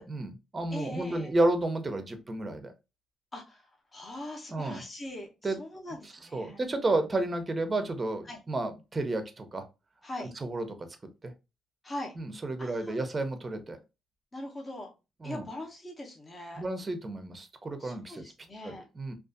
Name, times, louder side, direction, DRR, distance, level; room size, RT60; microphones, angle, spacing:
voice 1, 0.0-2.7 4.5-4.8 5.4-5.6 6.3-9.6 10.2-10.7 11.2-11.3 12.2-13.8 15.2-15.4 16.6-18.2 18.6-19.1, right 2 dB, 25° right, 8 dB, 0.5 m, -31 dB
voice 2, 0.7-1.3 3.3-3.6 3.9-6.6 8.3-8.4 10.0-10.3 11.8-12.2 12.6-13.0 14.3-14.9 15.2-16.6 17.8-18.8, left 1 dB, 25° left, 0 dB, 0.7 m, -41 dB
2.4 x 2.3 x 2.5 m, 0.27 s
cardioid pair, 90°, 0 cm